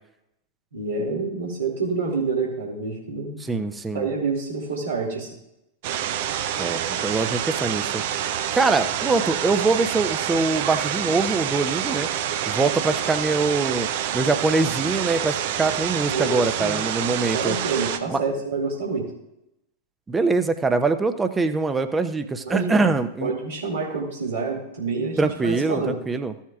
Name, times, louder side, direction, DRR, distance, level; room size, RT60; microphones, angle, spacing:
voice 1, 0.7-3.4 3.9-5.3 16.1-16.8 17.3-19.0 22.5-22.9 23.2-26.0, right 4 dB, 75° right, -6 dB, 2.3 m, -27 dB
voice 2, 3.4-4.1 6.6-8.0 8.5-12.1 12.5-13.9 14.1-17.6 18.1-18.2 20.1-23.3 25.2-26.3, right 3 dB, 15° right, 10 dB, 0.7 m, -23 dB
sound 1, 5.8-18.0, right 10 dB, 50° right, 0.7 m, -27 dB
15.0 x 7.3 x 2.4 m, 0.84 s
figure-of-eight pair, 90°, 0 cm